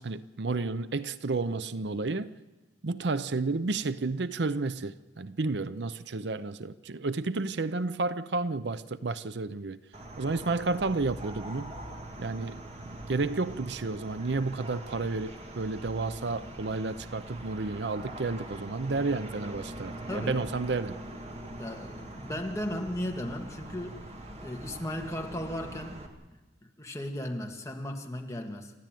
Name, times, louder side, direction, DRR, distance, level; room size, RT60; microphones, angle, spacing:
voice 1, 0.0-2.3 2.8-9.8 10.2-11.7 12.2-12.6 13.1-21.0, right 3 dB, 65° right, 0.7 m, -31 dB
sound 1, 9.9-26.1, right 1 dB, 35° right, 2.2 m, -43 dB
voice 2, 20.1-20.4 21.6-24.0 24.4-26.0 26.8-28.7, left 1 dB, 15° left, 2.2 m, -36 dB
29.0 x 13.5 x 9.2 m
head